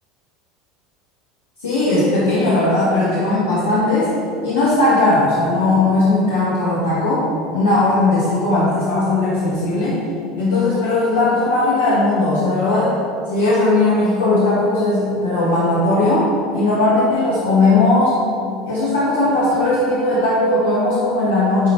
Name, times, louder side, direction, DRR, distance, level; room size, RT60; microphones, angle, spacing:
voice 1, 1.6-4.1 4.4-7.3 7.5-10.0 10.4-13.0 13.3-18.2 18.7-21.7, left 2 dB, 80° left, -9 dB, 1.7 m, -17 dB
10.5 x 4.3 x 4.6 m, 2.3 s
figure-of-eight pair, 75°, 0 cm